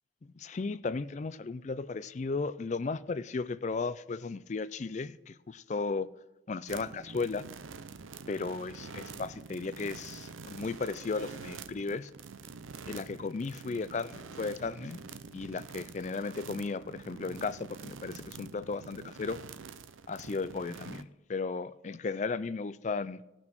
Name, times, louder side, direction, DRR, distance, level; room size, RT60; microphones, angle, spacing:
voice 1, 0.2-6.1 6.5-7.5 8.3-12.1 12.9-15.0 15.3-19.4 20.1-23.2, left 4 dB, 35° left, 0.4 m, -35 dB
sound 1, 6.7-21.0, right 5 dB, 85° right, 0.6 m, -46 dB
16.0 x 6.1 x 6.0 m
head